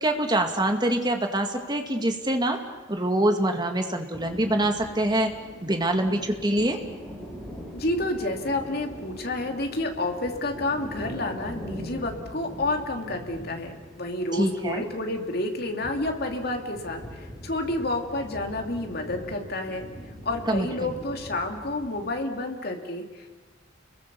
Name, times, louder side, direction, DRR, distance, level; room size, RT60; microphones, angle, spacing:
voice 1, 0.0-2.6 2.9-5.3 5.6-6.8 14.3-14.8 20.5-20.9, right 1 dB, 20° right, 5 dB, 2.2 m, -25 dB
sound 1, 4.1-22.3, equal, ahead, 7.5 m, -42 dB
voice 2, 7.7-19.9 20.2-23.4, left 2 dB, 50° left, 3 dB, 2.9 m, -30 dB
30.0 x 22.0 x 7.0 m, 1.3 s
head